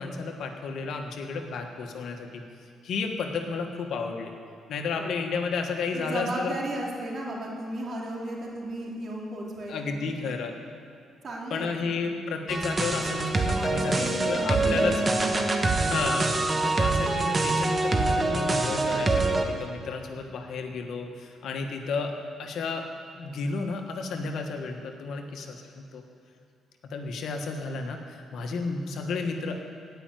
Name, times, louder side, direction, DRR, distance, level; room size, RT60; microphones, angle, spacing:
voice 1, 0.0-2.4 2.8-4.3 4.7-6.5 9.7-10.5 11.5-15.0 15.8-22.1 22.4-22.9 23.2-26.0 26.8-29.7, left 4 dB, 70° left, 3 dB, 1.5 m, -32 dB
voice 2, 5.0-5.3 5.9-10.4 11.2-12.2 13.5-15.6, right 1 dB, 50° right, -2 dB, 3.0 m, -35 dB
sound 1, 12.5-19.5, right 2 dB, 30° right, 1.4 m, -25 dB
17.0 x 5.8 x 9.1 m, 2.4 s
cardioid pair, 90°, 0 cm